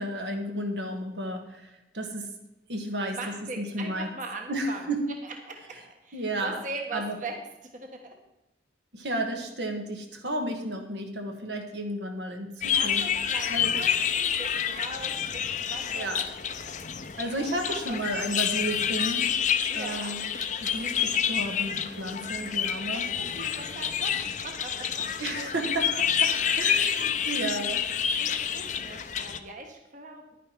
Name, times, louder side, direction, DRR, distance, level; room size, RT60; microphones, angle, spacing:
voice 1, 0.0-2.3 2.7-4.1 4.5-5.0 6.1-6.6 6.9-7.2 8.9-13.1 13.5-13.8 15.9-16.2 17.2-19.3 19.7-20.3 20.6-23.1 25.2-27.9, right 1 dB, 75° right, 4 dB, 1.6 m, -33 dB
voice 2, 3.1-4.8 5.2-7.4 7.7-8.2 12.7-16.3 16.6-16.7 17.0-18.3 19.7-20.2 22.9-25.1 28.2-30.4, right 2 dB, 45° right, 3 dB, 1.4 m, -40 dB
sound 1, 12.6-29.4, left 8 dB, 45° left, 0.7 m, -28 dB
10.5 x 10.0 x 4.5 m, 0.96 s
head